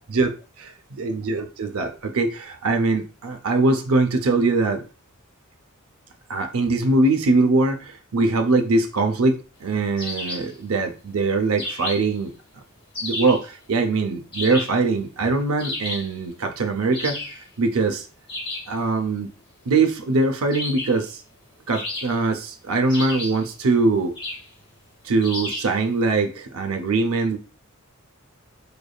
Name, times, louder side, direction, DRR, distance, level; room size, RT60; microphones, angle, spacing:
voice 1, 0.1-0.7 1.0-4.8 6.3-12.3 13.0-17.2 17.6-18.1 18.7-19.3 19.7-21.2 21.7-24.1 25.0-27.4, right 3 dB, 90° right, 6 dB, 0.6 m, -22 dB
sound 1, 10.0-10.5 11.6-12.2 12.9-13.5 14.3-14.8 15.6-16.1 16.9-17.4 18.3-18.7 20.5-21.0 21.7-22.4 22.9-23.5 24.1-24.5 25.2-25.8, left 2 dB, 25° left, 1.9 m, -32 dB
4.9 x 3.3 x 2.3 m, 0.34 s
head